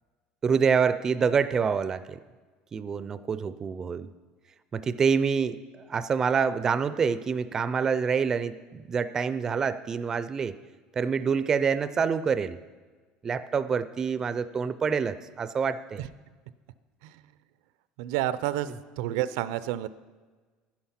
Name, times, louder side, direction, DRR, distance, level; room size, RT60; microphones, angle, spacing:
voice 1, 0.4-2.2 2.7-4.1 4.7-10.6 11.0-12.6 13.2-16.0, right 6 dB, 20° right, 13 dB, 0.3 m, -26 dB
voice 2, 18.0-18.7 19.0-19.9, right 13 dB, 90° right, 15 dB, 0.5 m, -29 dB
10.5 x 10.5 x 5.7 m, 1.4 s
cardioid pair, 165°, 3 cm